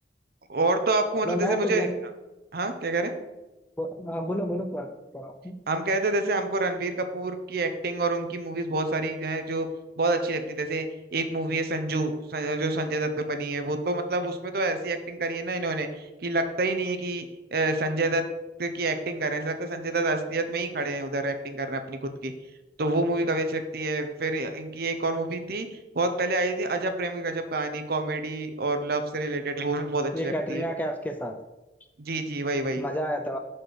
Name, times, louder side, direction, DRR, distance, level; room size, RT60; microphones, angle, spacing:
voice 1, 0.5-1.9 2.5-3.1 5.7-9.7 10.0-10.9 11.1-17.2 17.5-18.2 18.6-22.3 22.8-30.7 32.0-32.8, right 2 dB, 55° right, 8 dB, 0.6 m, -28 dB
voice 2, 1.3-2.0 3.8-5.7 30.1-31.4 32.8-33.4, equal, 10° left, 5 dB, 0.4 m, -30 dB
6.1 x 4.3 x 4.9 m, 1.0 s
head